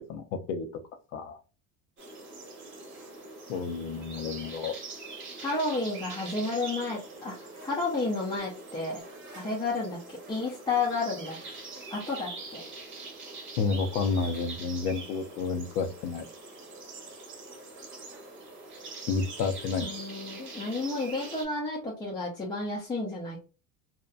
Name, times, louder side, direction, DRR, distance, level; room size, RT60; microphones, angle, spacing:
voice 1, 0.1-0.7 1.1-1.4 3.5-4.7 13.6-16.2 19.1-19.9, left 4 dB, 90° left, 8 dB, 0.6 m, -30 dB
sound 1, 2.0-21.4, right 3 dB, 30° right, 0.9 m, -43 dB
voice 2, 5.4-7.4 7.6-9.0 9.3-11.6 11.9-12.6 19.8-23.4, left 3 dB, 10° left, -4 dB, 0.4 m, -31 dB
2.7 x 2.1 x 2.3 m, 0.33 s
cardioid pair, 140°, 42 cm